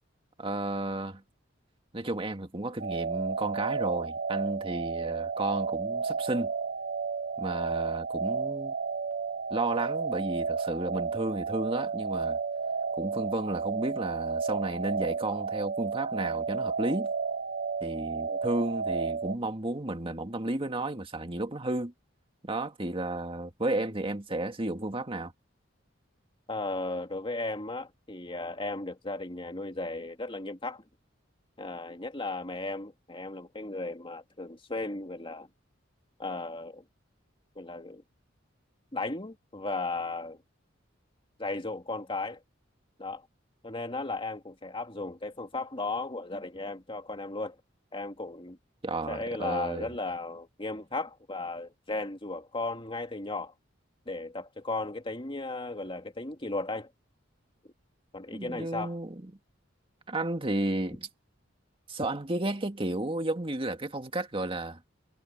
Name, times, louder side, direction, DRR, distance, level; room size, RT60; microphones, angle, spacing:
voice 1, 0.4-1.2 1.9-6.5 7.4-8.8 9.5-12.4 13.0-17.1 17.8-21.9 22.4-25.3 48.8-49.9 58.3-59.3 60.1-61.1 61.9-64.8, right 2 dB, 30° right, 2.0 m, -32 dB
sound 1, 2.8-19.4, right 5 dB, 50° right, 0.6 m, -32 dB
voice 2, 26.5-30.8 31.6-35.5 36.2-36.8 37.6-38.0 38.9-40.4 41.4-42.4 43.0-43.3 43.6-47.6 47.9-48.6 49.1-53.5 54.1-56.9 58.1-59.0, left 2 dB, 25° left, 2.3 m, -35 dB
head